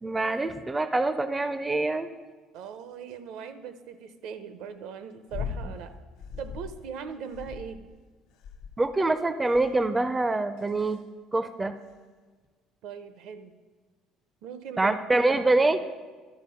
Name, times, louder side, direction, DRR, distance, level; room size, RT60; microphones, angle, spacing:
voice 1, 0.0-2.1 8.8-11.0 11.3-11.7 14.8-15.8, right 2 dB, 15° right, 11 dB, 0.4 m, -25 dB
voice 2, 2.5-5.9 6.4-7.9 12.8-13.5 14.4-15.7, right 7 dB, 75° right, 11 dB, 0.7 m, -40 dB
sound 1, 5.3-5.7 6.2-6.8 7.3-7.9 8.4-8.9 9.5-9.9 10.6-10.9 11.9-12.0, left 6 dB, 80° left, 0.7 m, -38 dB
12.0 x 4.7 x 5.6 m, 1.4 s
cardioid pair, 110°, 0 cm